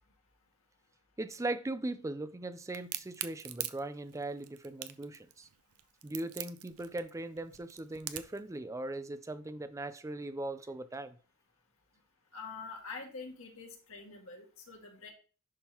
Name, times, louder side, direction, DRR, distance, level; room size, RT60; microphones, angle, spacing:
voice 1, 1.2-5.5 6.0-11.2, right 2 dB, 15° right, 0.4 m, -39 dB
Crack, 2.7-8.4, right 13 dB, 85° right, 0.5 m, -41 dB
voice 2, 12.3-15.1, left 4 dB, 65° left, 1.8 m, -45 dB
11.0 x 3.7 x 2.9 m
head